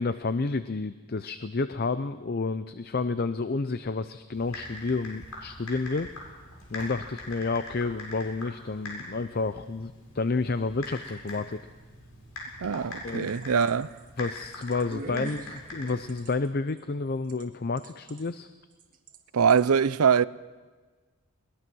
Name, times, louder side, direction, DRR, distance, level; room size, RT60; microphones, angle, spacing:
voice 1, 0.0-6.1 6.7-11.7 13.0-13.3 14.2-18.5, left 3 dB, 45° left, 0.5 m, -30 dB
Typing, 4.3-16.3, left 2 dB, 85° left, 7.6 m, -43 dB
voice 2, 12.6-13.9 19.3-20.2, right 6 dB, 85° right, 0.5 m, -23 dB
sound 1, 13.2-17.4 17.8-18.3 18.8-19.2 19.5-19.6, right 2 dB, 40° right, 1.9 m, -43 dB
22.0 x 20.5 x 6.2 m
head